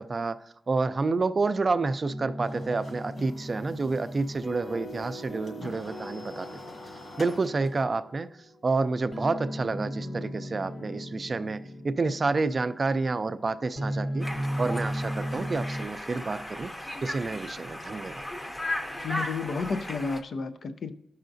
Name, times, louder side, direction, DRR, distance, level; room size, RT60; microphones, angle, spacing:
voice 1, 0.0-6.6 7.2-8.3 8.6-14.3 14.6-16.7 17.0-18.3, right 3 dB, 40° right, 0.3 m, -29 dB
sound 1, 2.1-15.8, equal, 40° left, 1.0 m, -37 dB
sound 2, 2.4-7.8, left 2 dB, 65° left, 1.8 m, -46 dB
Conversation, 14.2-20.2, left 1 dB, 15° left, 0.6 m, -36 dB
voice 2, 19.0-20.9, left 4 dB, 85° left, 0.5 m, -31 dB
13.5 x 5.6 x 2.6 m
wide cardioid pair, 125°, 0 cm